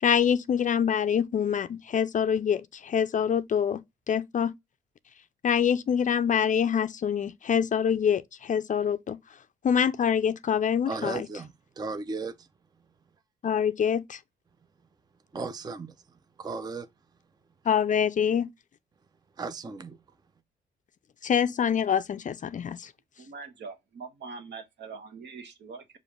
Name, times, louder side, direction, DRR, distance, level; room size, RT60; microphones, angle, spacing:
voice 1, 0.0-4.5 5.4-9.2 9.6-11.3 13.4-14.2 17.7-18.5 21.2-22.9, left 8 dB, 40° left, 0.4 m, -25 dB
voice 2, 10.9-11.5 11.8-12.4 15.3-15.9 16.4-16.9 19.4-20.0, right 4 dB, 20° right, 0.5 m, -35 dB
voice 3, 23.2-26.0, right 4 dB, 60° right, 1.2 m, -43 dB
5.0 x 2.5 x 3.6 m
cardioid pair, 90°, 20 cm